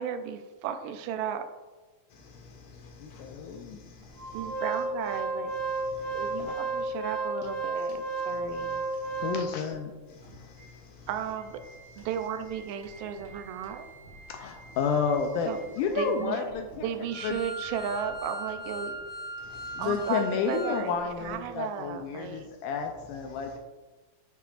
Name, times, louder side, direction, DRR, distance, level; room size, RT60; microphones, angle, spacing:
voice 1, 0.0-1.5 4.3-5.5 6.1-8.8 11.1-11.6 12.0-13.9 15.5-16.4 16.8-19.0 19.8-20.9 21.2-22.5, right 8 dB, 80° right, 9 dB, 2.1 m, -34 dB
voice 2, 2.1-4.5 5.9-6.2 9.0-9.2 10.2-11.1 19.4-19.9, left 4 dB, 65° left, 1 dB, 2.4 m, -51 dB
voice 3, 3.0-3.8 6.4-6.6 9.2-9.9 14.3-15.5 15.8-16.9 17.2-17.4 19.8-23.6, left 6 dB, 80° left, 4 dB, 1.9 m, -30 dB
Organ, 4.2-9.7 10.2-10.3 10.6-10.7 11.2-20.8 21.1-21.2, right 2 dB, 55° right, 2.6 m, -36 dB
9.3 x 5.8 x 2.5 m, 1.2 s
omnidirectional pair, 4.0 m